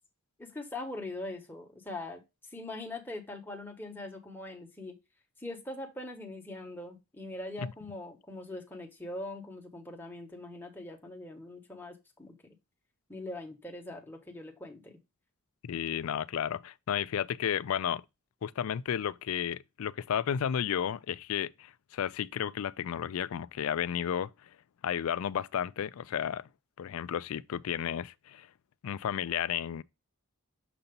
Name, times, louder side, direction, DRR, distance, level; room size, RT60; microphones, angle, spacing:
voice 1, 0.4-2.2 2.5-5.0 5.4-12.4 13.1-15.0, left 2 dB, 10° left, 1.2 m, -42 dB
voice 2, 15.6-18.0 18.4-24.3 24.8-26.5 26.8-28.5 28.8-29.8, left 9 dB, 75° left, 0.4 m, -32 dB
6.8 x 2.8 x 5.2 m
head